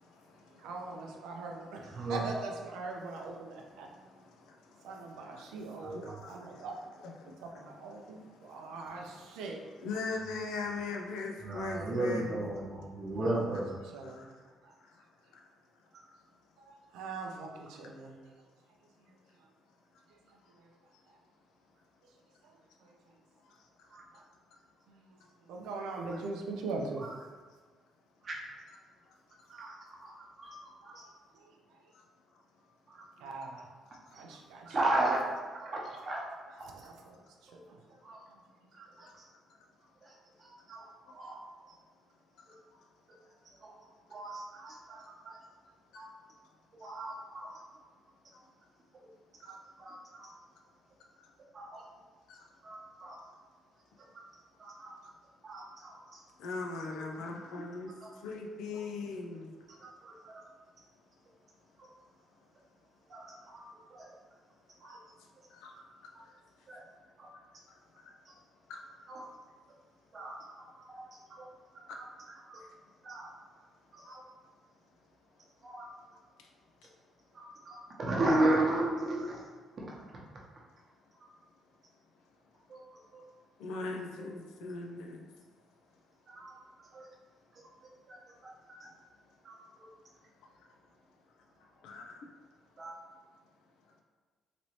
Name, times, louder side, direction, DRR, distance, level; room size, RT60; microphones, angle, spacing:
voice 1, 0.6-4.1 4.8-6.7 7.1-8.2 8.5-9.6 13.1-14.3 14.6-14.8 16.6-18.2 19.0-19.1 19.4-19.5 20.1-20.2 20.6-20.7 22.0-22.1 22.8-22.9 24.1-24.2 24.9-25.2 25.5-27.1 30.8-31.8 33.2-33.7 34.1-34.8 36.6-38.0 38.3-38.4 38.9-39.1, right 3 dB, 85° right, 1 dB, 0.4 m, -42 dB
voice 2, 3.8-5.6 5.9-6.7 7.0-7.4 8.0-8.3 9.8-12.6 14.0-14.3 15.3-15.5 23.5-23.9 24.1-24.2 29.4-29.5 31.9-32.0 34.1-34.2 42.5-42.6 45.9-46.0 49.4-49.6 52.3-52.5 55.0-55.1 56.4-59.5 65.5-65.7 66.0-66.3 66.8-66.9 67.3-67.4 67.7-67.8 68.0-68.1 68.7-68.8 71.9-72.0 83.6-85.3 91.8-92.3, left 3 dB, 85° left, 1 dB, 0.4 m, -41 dB
voice 3, 5.8-6.2 11.4-13.7 23.9-24.0 28.2-28.4 29.5-29.8 30.0-31.0 32.9-33.0 34.7-35.2 35.5-36.9 37.5-37.6 38.0-38.2 38.7-39.2 40.0-40.1 40.4-41.5 43.6-43.7 44.1-45.4 45.9-46.1 46.7-47.7 49.4-50.3 51.5-51.8 52.6-53.2 54.1-54.2 54.6-54.9 55.4-56.2 56.9-57.0 58.0-58.1 59.8-60.4 63.1-63.6 63.9-64.1 64.8-65.0 65.7-65.8 66.7-66.8 67.2-67.3 68.3-68.4 69.1-69.3 70.1-71.0 71.3-71.5 71.7-72.6 73.0-73.3 73.9-74.2 75.6-75.9 77.3-79.4 79.8-80.0 82.7-82.8 83.1-83.2 86.3-86.6 86.9-87.1 88.1-88.2 88.4-88.5 88.8-88.9 89.4-89.6 92.8-92.9, right 2 dB, 45° right, -3 dB, 0.9 m, -35 dB
3.0 x 2.7 x 3.0 m, 1.4 s
supercardioid pair, 70°, 0 cm